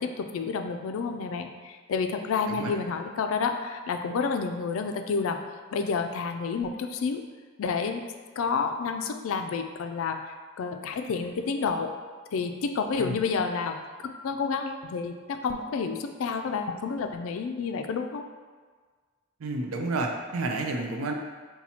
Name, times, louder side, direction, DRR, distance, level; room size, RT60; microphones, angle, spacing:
voice 1, 0.0-5.4 5.7-7.2 7.6-8.1 8.4-10.2 10.6-11.9 12.3-13.8 14.0-18.2, left 5 dB, 75° left, 6 dB, 0.3 m, -29 dB
voice 2, 19.4-21.1, right 2 dB, 90° right, 3 dB, 0.5 m, -30 dB
4.2 x 2.3 x 4.2 m, 1.5 s
head